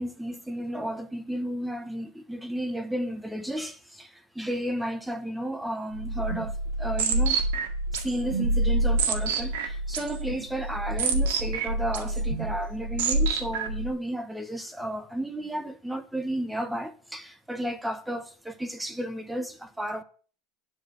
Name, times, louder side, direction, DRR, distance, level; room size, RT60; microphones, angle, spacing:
voice 1, 0.0-7.4 7.9-20.0, right 1 dB, 5° right, 1.0 m, -33 dB
sound 1, 6.0-13.9, right 2 dB, 80° right, 1.9 m, -27 dB
10.0 x 4.7 x 7.9 m
supercardioid pair, 125°, 0 cm